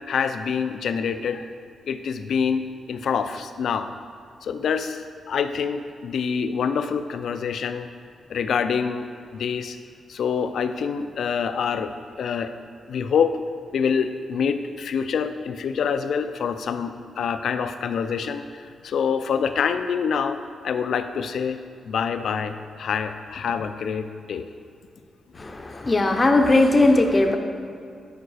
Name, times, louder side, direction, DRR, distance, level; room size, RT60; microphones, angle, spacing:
voice 1, 0.1-1.5 1.9-3.9 4.4-5.0 5.3-7.9 8.3-9.8 10.1-11.9 12.2-12.5 12.9-13.4 13.7-18.5 18.8-20.4 20.6-21.6 21.8-24.5, left 6 dB, 65° left, 9 dB, 0.5 m, -26 dB
voice 2, 25.4-27.4, left 2 dB, 20° left, 4 dB, 0.6 m, -18 dB
10.5 x 5.1 x 4.8 m, 2.4 s
wide cardioid pair, 150°, 0 cm